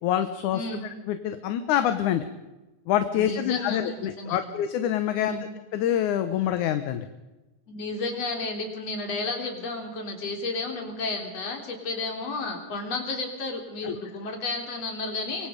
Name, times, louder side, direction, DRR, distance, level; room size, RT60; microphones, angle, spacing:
voice 1, 0.0-0.6 1.1-2.2 2.9-5.4 5.7-7.1 13.8-14.0, left 10 dB, 75° left, 9 dB, 2.5 m, -26 dB
voice 2, 0.5-0.8 3.1-4.4 5.1-5.4 7.7-15.5, left 3 dB, 55° left, 3 dB, 4.7 m, -32 dB
25.0 x 24.0 x 5.2 m, 1.1 s
omnidirectional pair, 3.6 m